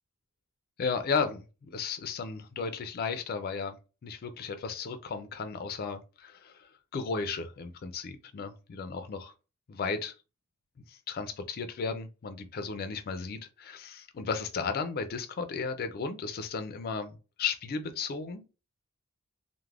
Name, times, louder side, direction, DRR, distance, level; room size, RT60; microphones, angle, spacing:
voice 1, 0.8-3.7 4.0-9.3 9.7-10.1 10.9-18.4, left 5 dB, 45° left, 0.3 m, -34 dB
2.3 x 2.1 x 3.2 m
head